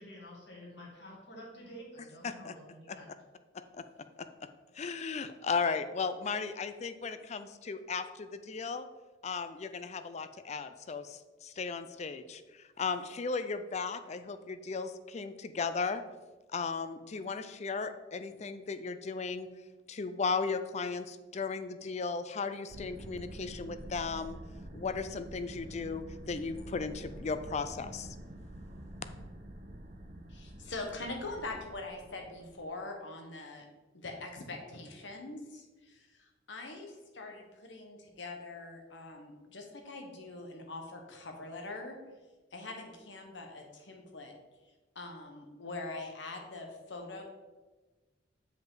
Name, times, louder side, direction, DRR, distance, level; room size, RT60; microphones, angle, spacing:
voice 1, 0.0-3.1, equal, 70° left, -3 dB, 2.3 m, -49 dB
voice 2, 4.7-8.9 9.2-16.0 16.5-19.5 19.9-24.4 24.7-28.2, left 4 dB, 40° left, 11 dB, 0.4 m, -36 dB
sound 1, 22.7-32.6, right 1 dB, 45° right, 0.7 m, -47 dB
voice 3, 30.3-33.6 33.9-42.0 42.5-44.3 44.9-47.2, left 2 dB, 85° left, 3 dB, 1.2 m, -43 dB
7.2 x 5.3 x 3.8 m, 1.2 s
head